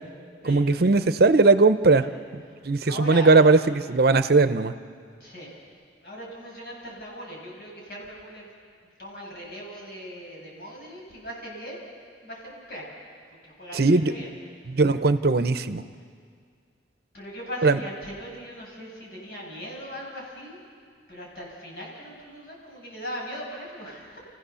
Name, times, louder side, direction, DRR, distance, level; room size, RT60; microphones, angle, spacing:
voice 1, 0.4-2.0 2.6-4.7 13.7-14.1 14.7-15.8 17.6-17.8, right 3 dB, 60° right, 11 dB, 0.7 m, -19 dB
voice 2, 2.5-3.3 5.2-5.5 6.0-8.5 9.0-11.9 12.2-12.8 13.4-14.3 17.1-20.6 21.1-24.2, equal, 60° left, -3 dB, 6.9 m, -39 dB
29.5 x 15.0 x 7.0 m, 2.1 s
head